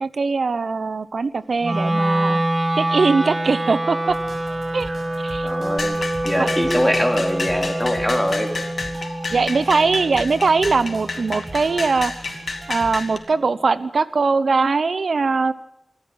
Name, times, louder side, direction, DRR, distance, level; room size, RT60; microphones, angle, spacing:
voice 1, 0.0-2.4 2.8-4.2 4.7-4.9 5.2-5.5 6.4-6.5 9.3-12.1 12.7-15.5, right 4 dB, 80° right, 15 dB, 0.9 m, -21 dB
Wind instrument woodwind instrument, 1.6-11.8, right 1 dB, 35° right, 2.0 m, -26 dB
sound 1, 4.1-13.1, right 2 dB, 60° right, 5.2 m, -40 dB
voice 2, 5.4-8.6, equal, 5° left, 5 dB, 2.7 m, -23 dB
sound 2, 5.8-13.2, left 3 dB, 70° left, 2.6 m, -30 dB
25.5 x 12.5 x 9.1 m, 0.83 s
wide cardioid pair, 100°, 0 cm